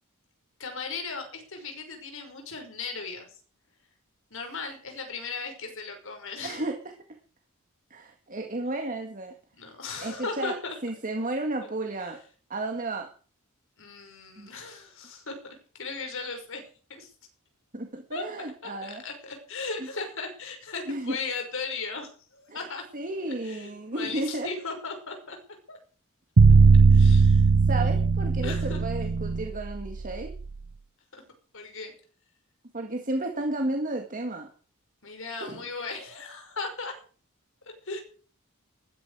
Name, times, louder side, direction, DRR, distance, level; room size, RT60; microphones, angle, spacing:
voice 1, 0.6-3.4 4.3-6.7 9.6-10.8 11.6-11.7 13.8-15.3 15.7-16.6 17.0-17.1 18.1-22.8 23.4-25.4 25.7-25.8 26.9-27.5 27.8-28.0 28.4-28.8 31.1-31.2 31.5-31.9 35.0-36.9 37.9-38.0, left 4 dB, 65° left, 5 dB, 5.7 m, -37 dB
voice 2, 6.4-6.8 7.9-9.3 10.0-10.6 10.8-12.2 12.5-13.1 14.4-14.5 17.7-19.0 20.9-21.2 22.5-22.6 22.9-24.5 26.5-26.6 27.7-30.4 32.7-34.5 35.4-35.6, right 2 dB, 40° right, 4 dB, 2.0 m, -32 dB
sound 1, 26.4-30.5, right 4 dB, 65° right, 0.6 m, -19 dB
20.0 x 13.5 x 4.9 m, 0.42 s
head